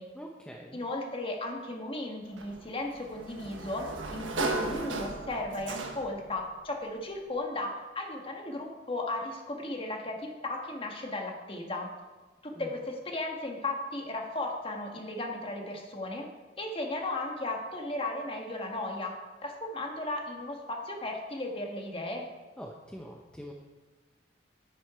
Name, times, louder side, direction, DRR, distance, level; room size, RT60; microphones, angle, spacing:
voice 1, 0.1-0.8 12.6-12.7 22.6-23.5, equal, 5° left, 0 dB, 0.7 m, -44 dB
voice 2, 0.7-11.9 12.4-16.3 16.6-19.2 19.4-22.3, left 2 dB, 30° left, 2 dB, 1.5 m, -35 dB
Sliding door, 2.4-6.3, right 2 dB, 90° right, 1.3 m, -36 dB
10.0 x 9.4 x 4.9 m, 1.3 s
head